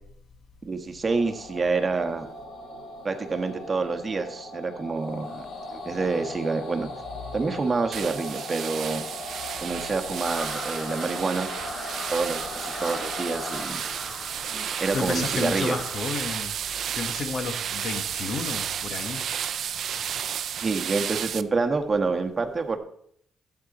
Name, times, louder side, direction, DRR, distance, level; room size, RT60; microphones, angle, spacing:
voice 1, 0.6-2.3 3.0-5.5 5.7-6.9 7.3-9.0 9.6-11.5 12.1-13.8 14.5-15.8 20.6-22.8, right 4 dB, 30° right, 5 dB, 1.5 m, -27 dB
sound 1, 1.1-13.6, left 2 dB, 80° left, 2.1 m, -39 dB
voice 2, 7.2-7.6 14.9-16.5 16.9-19.2, left 4 dB, 60° left, 7 dB, 1.5 m, -32 dB
sound 2, 7.9-21.4, right 9 dB, 65° right, 0.5 m, -32 dB
sound 3, 10.2-16.0, left 1 dB, 25° left, 1.7 m, -39 dB
12.0 x 8.7 x 4.2 m, 0.68 s
cardioid pair, 90°, 0 cm